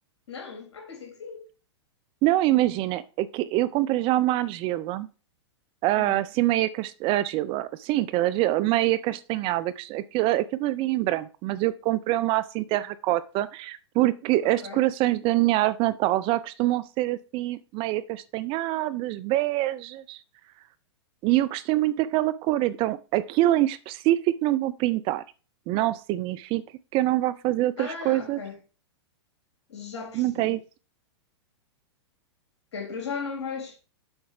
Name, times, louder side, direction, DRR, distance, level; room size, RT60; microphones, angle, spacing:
voice 1, 0.3-1.5 5.9-6.2 14.4-14.8 27.8-28.6 29.7-30.6 32.7-33.8, left 5 dB, 70° left, 3.6 m, -37 dB
voice 2, 2.2-5.1 5.8-20.2 21.2-25.2 25.7-26.6 26.9-28.4 30.1-30.6, right 16 dB, 35° right, 0.6 m, -25 dB
7.9 x 4.5 x 5.7 m
hypercardioid pair, 110°, 15 cm